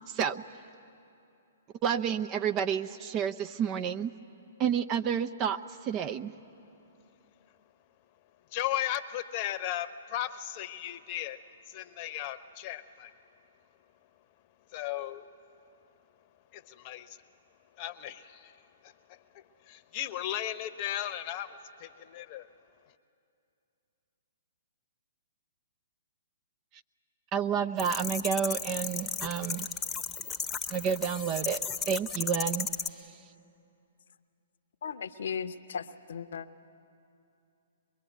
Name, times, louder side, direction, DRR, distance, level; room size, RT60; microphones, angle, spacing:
voice 1, 0.1-0.4 1.8-4.1 4.6-6.3 27.3-29.7 30.7-31.6 31.9-32.7, right 8 dB, 30° right, 10 dB, 0.6 m, -30 dB
voice 2, 8.5-13.1 14.7-15.3 16.5-17.2 17.8-18.6 18.8-22.5, left 12 dB, 40° left, 13 dB, 0.9 m, -36 dB
sound 1, 27.8-32.9, left 6 dB, 15° left, 1.0 m, -34 dB
voice 3, 34.8-36.5, left 7 dB, 65° left, 11 dB, 0.8 m, -36 dB
23.0 x 22.0 x 8.2 m, 2.7 s
hypercardioid pair, 125°, 0 cm